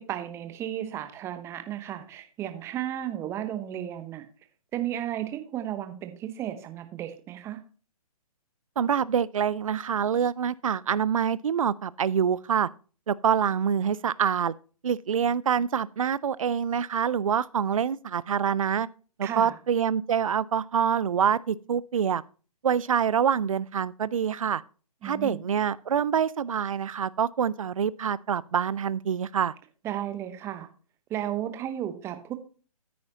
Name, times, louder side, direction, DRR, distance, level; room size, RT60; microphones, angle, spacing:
voice 1, 0.0-4.2 4.7-7.6 19.2-19.6 25.0-25.5 29.8-30.7 31.1-32.3, right 11 dB, 15° right, 0.9 m, -34 dB
voice 2, 8.8-12.7 13.1-14.5 14.8-18.9 19.2-22.2 22.6-24.6 25.0-29.5, right 8 dB, 65° right, 0.4 m, -26 dB
9.4 x 9.3 x 2.9 m
figure-of-eight pair, 130°, 19 cm